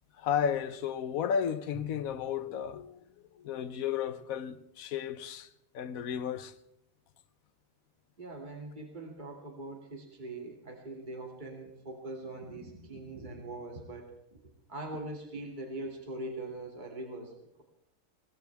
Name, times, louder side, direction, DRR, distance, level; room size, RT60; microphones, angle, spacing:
voice 1, 0.2-3.0 3.4-5.5 5.7-6.5, left 8 dB, 80° left, 1.2 m, -33 dB
Drum, 1.7-4.1, equal, 5° left, 2.5 m, -54 dB
voice 2, 8.2-14.4 14.7-17.3, right 2 dB, 35° right, 2.6 m, -42 dB
22.0 x 19.0 x 3.5 m
omnidirectional pair, 1.5 m